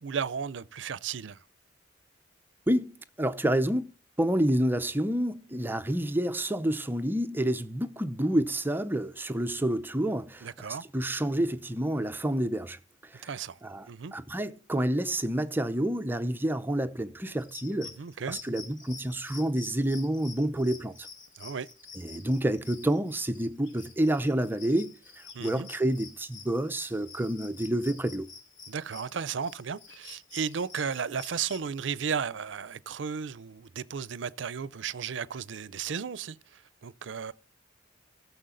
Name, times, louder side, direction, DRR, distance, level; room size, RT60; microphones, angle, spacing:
voice 1, 0.0-1.4 10.4-10.8 13.2-13.6 13.9-14.1 18.0-18.4 21.4-21.7 25.3-25.7 28.7-37.3, right 6 dB, 70° right, 0.5 m, -34 dB
voice 2, 2.7-3.9 4.2-13.3 13.6-17.9 18.3-21.1 22.0-28.3, right 1 dB, 10° right, 0.6 m, -29 dB
sound 1, 17.4-31.7, left 5 dB, 85° left, 2.7 m, -49 dB
15.5 x 7.0 x 3.8 m
head